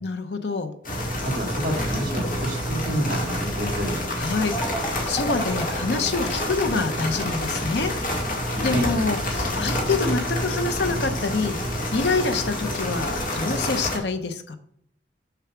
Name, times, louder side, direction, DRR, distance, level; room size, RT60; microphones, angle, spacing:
voice 1, 0.0-0.7 4.2-4.5 5.1-7.9 8.2-11.6 11.9-14.6, left 4 dB, 70° left, 9 dB, 0.8 m, -26 dB
sound 1, 0.8-14.0, left 1 dB, 50° left, 2.1 m, -28 dB
voice 2, 1.2-4.0 8.5-8.9, right 1 dB, 50° right, 1 dB, 2.1 m, -29 dB
sound 2, 4.5-12.9, right 1 dB, 15° left, 0.9 m, -38 dB
6.9 x 4.8 x 5.9 m, 0.68 s
head